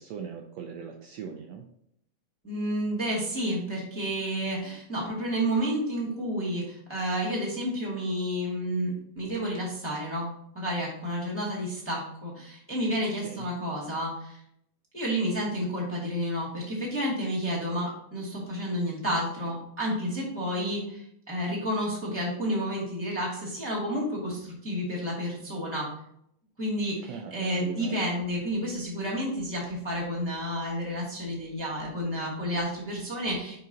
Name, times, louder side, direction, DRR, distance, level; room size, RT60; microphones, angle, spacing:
voice 1, 0.0-1.6 13.2-13.4 27.0-28.1, right 7 dB, 80° right, 3 dB, 1.5 m, -40 dB
voice 2, 2.4-10.3 10.5-14.4 14.9-25.9 26.6-33.6, equal, 5° left, -5 dB, 1.1 m, -30 dB
5.4 x 5.0 x 3.9 m, 0.74 s
omnidirectional pair, 3.5 m